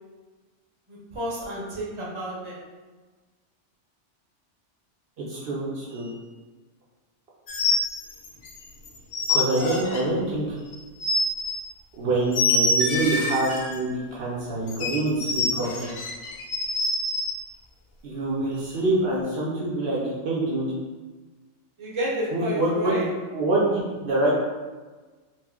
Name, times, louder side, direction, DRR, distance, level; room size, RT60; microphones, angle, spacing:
voice 1, 0.9-2.5 21.8-23.0, right 1 dB, 30° right, -5 dB, 0.6 m, -31 dB
voice 2, 5.2-6.1 9.3-10.6 12.0-15.9 18.0-20.7 22.3-24.3, right 2 dB, 65° right, -6 dB, 0.8 m, -26 dB
sound 1, 7.5-8.6 8.8-10.0 10.7-11.5 12.3-13.8 14.7-17.3, left 2 dB, 80° left, 0.9 m, -26 dB
4.1 x 2.0 x 2.3 m, 1.3 s
omnidirectional pair, 1.2 m